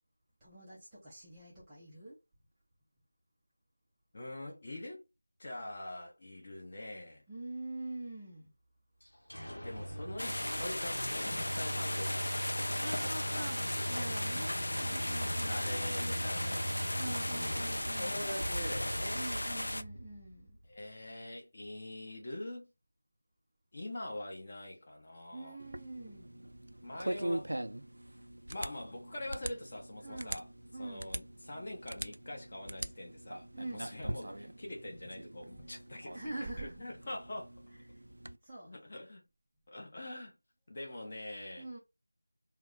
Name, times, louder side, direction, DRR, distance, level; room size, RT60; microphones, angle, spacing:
voice 1, 0.4-2.1 7.3-8.5 12.8-15.7 16.9-18.3 19.1-20.6 25.3-26.4 30.0-30.4 30.7-31.2 33.5-33.9 35.4-35.7 36.1-36.8 38.4-38.7 41.6-41.8, right 2 dB, 5° right, 0.4 m, -45 dB
voice 2, 4.1-5.0 5.4-7.2 9.6-12.8 13.1-14.5 15.3-17.1 18.0-19.3 20.6-22.7 23.7-25.6 26.8-27.5 28.5-30.5 30.8-37.5 38.7-39.3 39.7-40.3 40.7-41.7, left 1 dB, 25° left, 0.8 m, -44 dB
sound 1, 9.0-20.7, equal, 85° left, 0.7 m, -40 dB
sound 2, 10.2-19.8, left 1 dB, 65° left, 0.3 m, -36 dB
sound 3, 25.6-38.4, right 1 dB, 70° right, 0.3 m, -43 dB
2.2 x 2.0 x 3.6 m
figure-of-eight pair, 175°, 0 cm